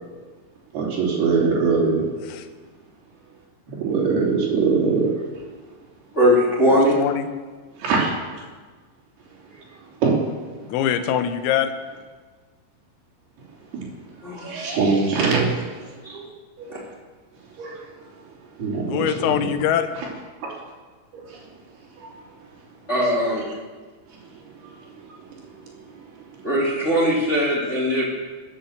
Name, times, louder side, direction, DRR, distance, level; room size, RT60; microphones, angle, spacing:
voice 1, 0.7-2.0 3.7-5.1 7.8-8.4 9.5-9.6 10.0-10.2 13.7-13.9 14.2-16.3 16.6-16.8 17.6-17.8 18.6-19.1 19.4-19.5 20.4-20.5 21.1-21.4 22.0-22.1 23.2-23.3 24.6-24.8 25.0-25.1 25.5-26.0, right 4 dB, 55° right, -3 dB, 4.6 m, -23 dB
voice 2, 6.1-6.9 14.2-14.5 16.0-16.2 16.7-16.8 22.9-23.4 26.4-28.1, equal, 20° left, -5 dB, 2.0 m, -20 dB
voice 3, 6.7-7.3 10.6-11.7 18.9-19.9, left 10 dB, 90° left, 9 dB, 3.7 m, -23 dB
21.5 x 8.9 x 7.2 m, 1.4 s
omnidirectional pair, 5.9 m